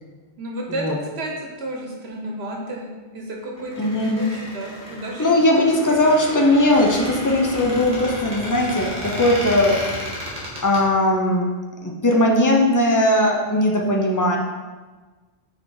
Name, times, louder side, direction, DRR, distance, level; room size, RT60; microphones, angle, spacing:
voice 1, 0.4-1.3 1.6-2.9 3.1-6.0, right 1 dB, 80° right, 0 dB, 1.2 m, -32 dB
Squeak, 3.6-10.8, equal, 45° right, 1.9 m, -32 dB
voice 2, 3.8-4.3 5.2-9.7 10.6-11.4 11.8-14.4, left 1 dB, 20° left, 0 dB, 0.7 m, -19 dB
5.5 x 4.1 x 4.8 m, 1.3 s
omnidirectional pair, 1.1 m